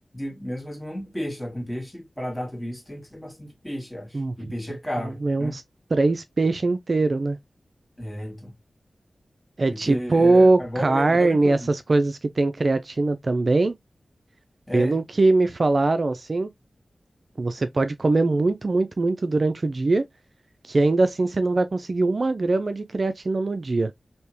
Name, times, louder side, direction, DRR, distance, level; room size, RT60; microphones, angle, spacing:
voice 1, 0.1-5.6 8.0-8.5 9.7-11.6 14.7-15.0, equal, 10° left, 1.9 m, -33 dB
voice 2, 4.1-5.6 5.9-7.4 9.6-13.8 14.7-16.5 17.4-20.0 20.6-23.9, right 2 dB, 50° right, 0.3 m, -22 dB
3.4 x 2.7 x 2.9 m
wide cardioid pair, 65°, 0 cm